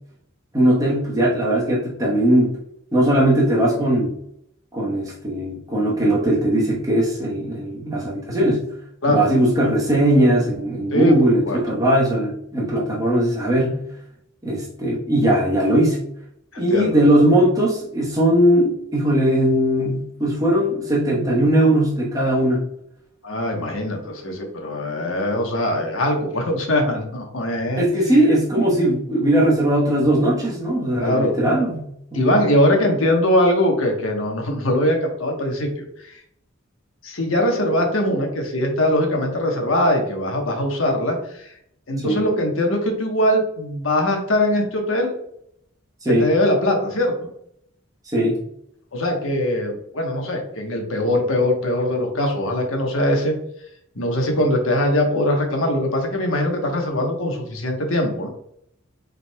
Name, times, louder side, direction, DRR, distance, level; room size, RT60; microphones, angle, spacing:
voice 1, 0.5-2.6 2.9-4.1 4.7-8.7 9.1-13.8 14.4-16.0 16.6-22.6 27.8-32.3 42.0-42.2 46.0-46.3 48.1-48.4, right 1 dB, 15° right, -4 dB, 1.1 m, -19 dB
voice 2, 11.5-11.8 16.5-17.0 23.2-27.8 28.1-28.2 31.0-31.3 32.1-36.2 37.0-41.5 41.9-45.1 46.1-47.1 48.9-53.3 53.9-58.3, left 1 dB, 85° left, 2 dB, 1.1 m, -21 dB
5.6 x 3.9 x 2.3 m, 0.72 s
head